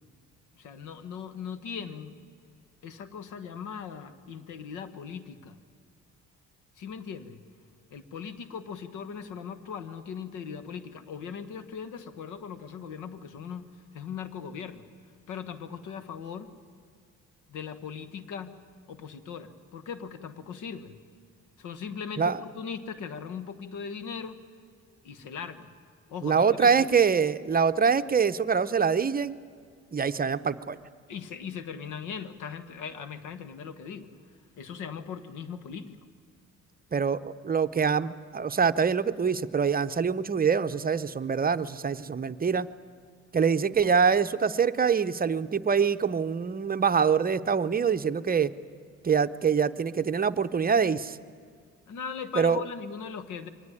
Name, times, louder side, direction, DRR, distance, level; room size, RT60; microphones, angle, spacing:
voice 1, 0.6-2.2 2.8-5.6 6.8-7.4 7.9-13.7 13.9-14.9 15.3-16.5 17.5-18.6 18.9-21.0 21.6-24.4 25.0-25.7 26.1-26.9 31.1-34.1 34.6-36.0 51.9-53.5, left 6 dB, 90° left, 12 dB, 1.4 m, -39 dB
voice 2, 26.2-29.4 29.9-30.8 36.9-42.7 43.3-48.5 49.0-51.2 52.3-52.6, right 6 dB, 30° right, 12 dB, 0.7 m, -25 dB
23.0 x 18.5 x 9.9 m, 2.1 s
cardioid pair, 90°, 30 cm